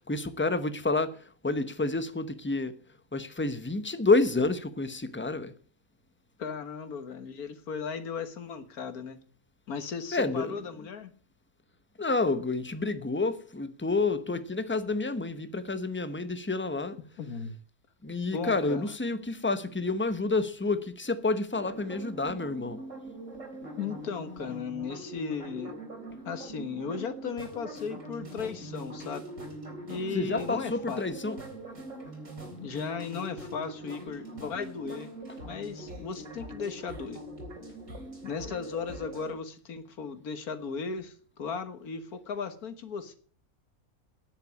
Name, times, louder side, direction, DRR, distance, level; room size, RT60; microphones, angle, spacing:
voice 1, 0.0-2.8 3.1-5.5 10.1-10.5 12.0-17.0 18.0-22.8 30.1-31.4, left 3 dB, 10° left, 0.7 m, -29 dB
voice 2, 6.4-9.2 9.7-11.1 17.2-17.6 18.3-18.9 23.8-25.8 26.3-29.2 29.9-31.0 32.6-35.1 35.4-37.2 38.2-43.2, left 5 dB, 85° left, 1.9 m, -36 dB
sound 1, 21.5-39.3, right 1 dB, 55° right, 3.9 m, -42 dB
10.0 x 8.1 x 8.5 m
omnidirectional pair, 1.5 m